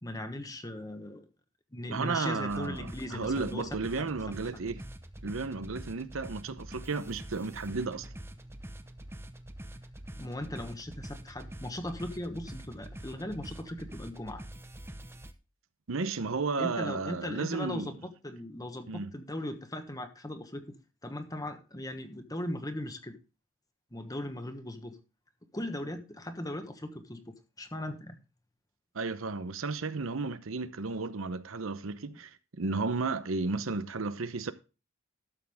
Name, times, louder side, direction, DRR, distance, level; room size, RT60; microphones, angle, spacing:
voice 1, 0.0-1.3 1.7-4.1 4.5-4.6 10.1-14.4 16.6-20.7 21.0-23.2 23.9-25.0 25.5-28.2, left 1 dB, 20° left, 1.3 m, -38 dB
voice 2, 1.9-4.8 5.2-8.1 15.9-17.9 18.9-19.1 28.9-34.5, right 4 dB, 90° right, 0.8 m, -33 dB
sound 1, 2.5-15.3, right 1 dB, 10° right, 0.8 m, -45 dB
12.5 x 7.2 x 3.5 m
head